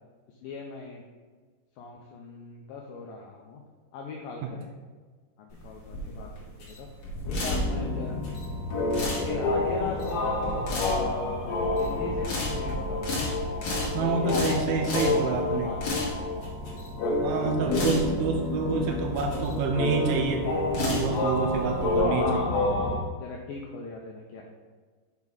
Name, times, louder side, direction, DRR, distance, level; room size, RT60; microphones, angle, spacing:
voice 1, 0.4-1.0 1.8-3.6 3.9-4.7 5.4-6.3 6.6-6.9 7.3-8.2 9.2-11.5 11.8-13.3 13.8-14.4 14.8-15.8 17.0-20.2 22.0-22.6 23.2-24.4, left 4 dB, 90° left, 0 dB, 2.0 m, -37 dB
sound 1, 5.5-22.0, left 1 dB, 50° left, 2.5 m, -34 dB
sound 2, 7.2-23.0, left 2 dB, 70° left, 3.6 m, -29 dB
voice 2, 13.9-15.7 17.2-20.5 20.8-22.4, right 5 dB, 80° right, 2 dB, 2.3 m, -28 dB
7.2 x 6.9 x 4.0 m, 1.5 s
omnidirectional pair, 5.0 m